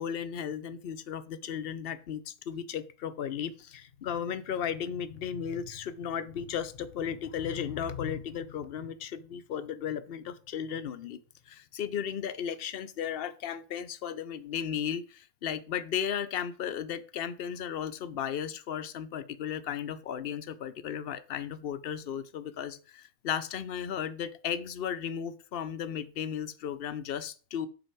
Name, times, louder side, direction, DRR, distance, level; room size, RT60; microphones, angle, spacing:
voice 1, 0.0-11.2 11.5-27.7, left 8 dB, 55° left, 0.8 m, -35 dB
7.9 x 5.4 x 4.5 m
omnidirectional pair, 1.4 m